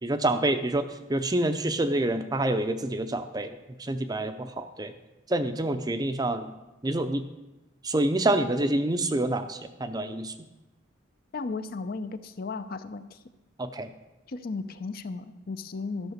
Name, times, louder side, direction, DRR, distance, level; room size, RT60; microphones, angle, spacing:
voice 1, 0.0-4.9 5.3-6.5 6.8-7.3 7.8-10.3 13.6-13.9, right 1 dB, 20° right, 9 dB, 0.5 m, -27 dB
voice 2, 11.3-13.2 14.3-16.1, left 3 dB, 50° left, 11 dB, 0.5 m, -35 dB
12.5 x 5.9 x 6.5 m, 1.0 s
head